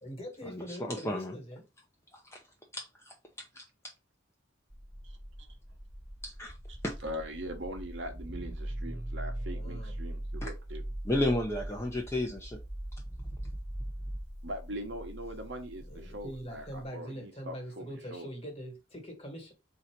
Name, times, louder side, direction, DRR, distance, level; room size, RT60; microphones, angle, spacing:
voice 1, 0.0-1.7 9.5-9.9 15.9-19.5, equal, 30° left, 1.4 m, -43 dB
voice 2, 0.5-1.3 2.3-2.4 2.7-2.8 3.6-3.7 6.2-6.5 6.8-6.9 10.4-10.5 11.1-12.6, left 1 dB, 15° left, 0.6 m, -32 dB
sound 1, 4.7-16.8, right 1 dB, 5° right, 1.1 m, -41 dB
voice 3, 7.0-10.8 14.4-18.3, equal, 70° right, 1.0 m, -41 dB
3.9 x 2.8 x 4.4 m
head